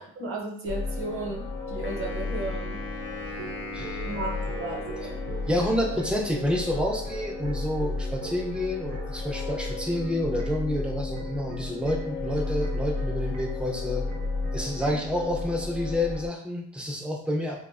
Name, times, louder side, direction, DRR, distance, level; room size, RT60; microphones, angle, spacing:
voice 1, 0.2-2.8 4.0-5.2 14.8-15.0, right 2 dB, 45° right, -1 dB, 0.8 m, -34 dB
sound 1, 0.7-16.3, left 3 dB, 90° left, 0.5 m, -33 dB
Wind instrument woodwind instrument, 1.8-6.1, left 3 dB, 45° left, 0.6 m, -40 dB
sound 2, 3.4-15.1, right 5 dB, 80° right, 0.6 m, -44 dB
voice 2, 5.5-14.0 14.5-17.6, left 1 dB, 5° right, 0 dB, 0.4 m, -29 dB
2.5 x 2.1 x 2.4 m, 0.64 s
cardioid pair, 90°, 30 cm